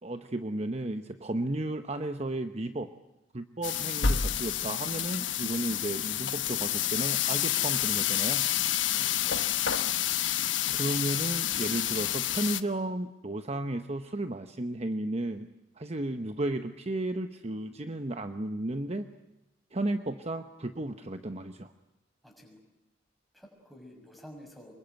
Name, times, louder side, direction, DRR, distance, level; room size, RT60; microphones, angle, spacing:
voice 1, 0.0-2.9 3.3-8.5 10.7-15.5 15.8-19.1 19.7-21.7, right 1 dB, 35° right, 8 dB, 1.0 m, -33 dB
sound 1, 3.6-12.6, left 10 dB, 75° left, 1.1 m, -29 dB
voice 2, 8.9-9.4 22.2-22.6 23.3-24.7, equal, ahead, 1 dB, 6.3 m, -50 dB
25.5 x 22.0 x 9.2 m, 0.98 s
head